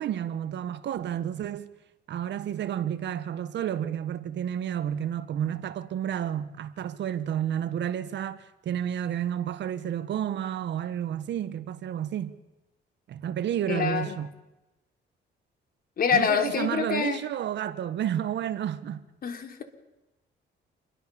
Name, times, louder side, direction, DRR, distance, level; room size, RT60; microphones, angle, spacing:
voice 1, 0.0-1.7 2.1-12.3 13.1-14.3 16.1-19.0, right 10 dB, 70° right, 1.6 m, -31 dB
voice 2, 13.7-14.2 16.0-17.2 19.2-19.6, left 6 dB, 50° left, 3.6 m, -26 dB
28.0 x 22.5 x 7.2 m
cardioid pair, 135°, 19 cm